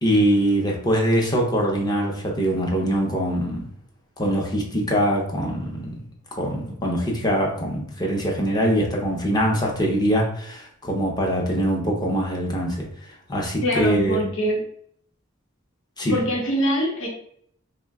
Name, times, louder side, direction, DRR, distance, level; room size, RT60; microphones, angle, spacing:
voice 1, 0.0-3.7 4.2-6.0 6.4-12.9 13.3-14.2 16.0-16.2, equal, 20° left, -1 dB, 0.6 m, -23 dB
voice 2, 13.6-14.6 16.1-17.1, equal, 70° left, -1 dB, 0.9 m, -23 dB
2.6 x 2.1 x 3.4 m, 0.65 s
head